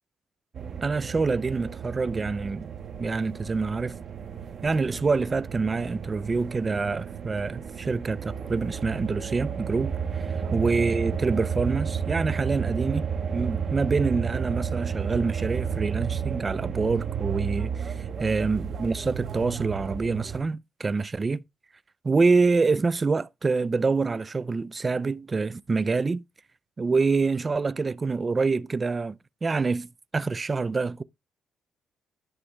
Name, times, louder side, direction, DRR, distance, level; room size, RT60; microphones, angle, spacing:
sound 1, 0.5-20.4, right 7 dB, 50° right, 1.3 m, -32 dB
voice 1, 0.8-2.7 3.0-4.0 4.6-17.9 18.2-21.4 22.0-26.2 26.8-31.0, right 4 dB, 25° right, 0.4 m, -26 dB
11.0 x 6.4 x 3.3 m
cardioid pair, 120°, 0 cm